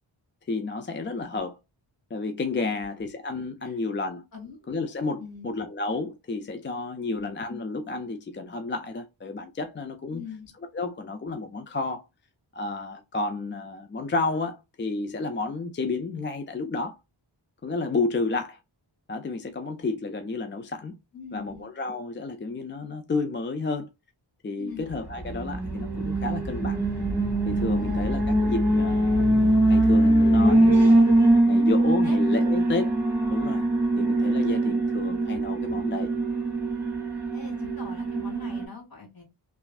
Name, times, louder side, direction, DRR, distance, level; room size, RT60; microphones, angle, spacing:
voice 1, 0.5-1.6 2.1-4.2 4.7-10.2 10.6-12.0 12.5-17.0 17.6-18.6 19.1-21.0 21.3-23.9 24.4-26.8 27.5-31.1 31.5-32.9 33.3-33.6 34.0-36.1, left 3 dB, 25° left, 0.3 m, -31 dB
voice 2, 5.2-5.5 7.1-7.4 10.1-10.5 21.1-21.6 24.6-24.9 27.8-28.1 32.0-32.2 37.3-39.2, left 5 dB, 45° left, 1.8 m, -41 dB
Alarm, 25.2-38.7, right 1 dB, 5° right, 1.5 m, -22 dB
3.0 x 2.5 x 2.3 m
wide cardioid pair, 65°, 47 cm